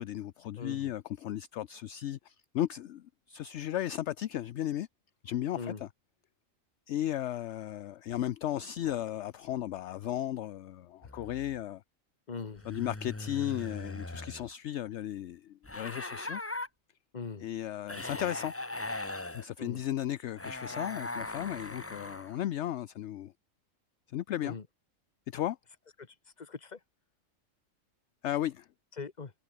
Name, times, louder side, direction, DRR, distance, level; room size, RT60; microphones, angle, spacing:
voice 1, 0.0-4.9 5.2-5.9 6.9-11.8 12.6-16.4 17.4-18.5 19.3-23.3 24.1-24.5 25.3-25.6 28.2-28.7, left 12 dB, 65° left, 0.9 m, -35 dB
voice 2, 0.6-0.9 5.5-5.8 12.3-12.6 17.1-17.4 19.6-19.8 24.4-24.6 26.4-26.8 29.0-29.3, left 4 dB, 35° left, 1.5 m, -40 dB
sound 1, 11.0-11.6 12.6-14.5 15.6-16.7 17.9-19.5 20.4-22.4, left 2 dB, 10° left, 0.9 m, -40 dB
omnidirectional pair, 1.4 m